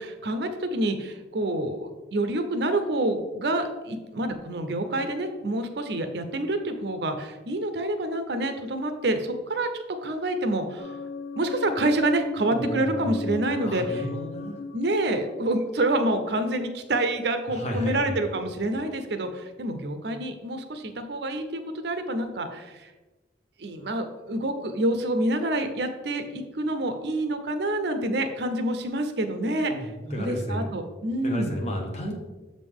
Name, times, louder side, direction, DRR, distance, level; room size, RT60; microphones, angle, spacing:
voice 1, 0.0-10.9 11.4-14.1 14.7-22.9 23.6-31.5, right 1 dB, 60° right, 7 dB, 0.6 m, -27 dB
sound 1, 10.8-16.6, left 2 dB, 70° left, 0.4 m, -36 dB
voice 2, 12.5-14.6 17.5-18.2 29.7-30.7 31.2-32.2, equal, 35° left, 0 dB, 0.9 m, -32 dB
7.0 x 5.2 x 3.5 m, 1.2 s
head